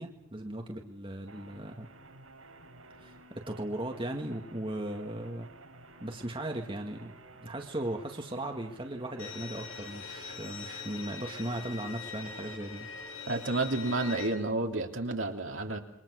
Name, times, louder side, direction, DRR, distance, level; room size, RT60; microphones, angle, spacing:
voice 1, 0.0-1.9 3.0-5.5 6.0-7.1 7.4-12.9, right 1 dB, 25° right, 2 dB, 2.1 m, -37 dB
sound 1, 1.3-14.3, right 1 dB, 80° right, 7.7 m, -55 dB
Bowed string instrument, 9.2-14.3, left 5 dB, 80° left, 5.7 m, -43 dB
voice 2, 13.3-15.8, right 2 dB, 65° right, 3 dB, 3.1 m, -30 dB
28.5 x 24.0 x 6.4 m, 0.68 s
head